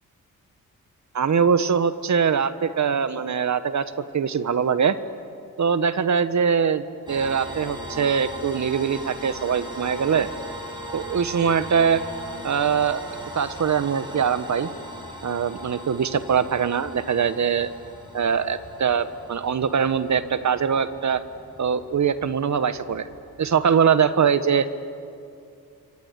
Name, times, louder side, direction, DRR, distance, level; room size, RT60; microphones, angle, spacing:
voice 1, 1.1-3.8 4.1-5.0 5.6-10.3 10.9-12.0 12.4-13.0 13.3-14.7 15.2-17.7 18.1-21.2 21.6-23.1 23.4-24.7, right 7 dB, 50° right, 13 dB, 1.4 m, -22 dB
sound 1, 7.1-24.2, right 1 dB, 10° right, 7.0 m, -39 dB
28.0 x 23.5 x 8.4 m, 2.5 s
cardioid pair, 75°, 36 cm